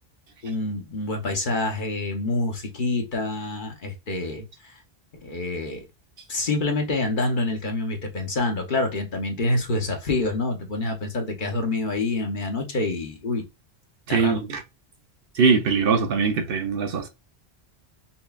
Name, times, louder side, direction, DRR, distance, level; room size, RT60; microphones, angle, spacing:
voice 1, 0.4-4.4 5.1-5.8 6.3-13.4 14.1-14.4, left 2 dB, 50° left, 1.0 m, -27 dB
voice 2, 14.1-14.6 15.3-17.1, right 5 dB, 65° right, 0.8 m, -21 dB
5.6 x 2.2 x 2.3 m
omnidirectional pair, 1.1 m